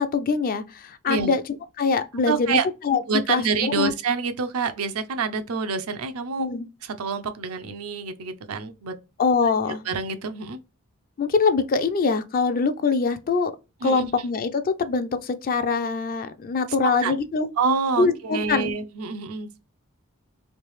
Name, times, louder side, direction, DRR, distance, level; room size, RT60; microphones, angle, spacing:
voice 1, 0.0-1.4 1.8-2.6 2.8-3.9 6.4-6.7 9.2-9.8 11.2-13.5 13.8-17.5 18.0-18.7, left 4 dB, 40° left, 0.4 m, -23 dB
voice 2, 2.3-2.7 3.1-6.5 6.8-8.9 9.9-10.6 13.8-14.1 16.8-17.2 17.6-19.6, right 5 dB, 80° right, 0.5 m, -27 dB
3.2 x 2.6 x 3.1 m
head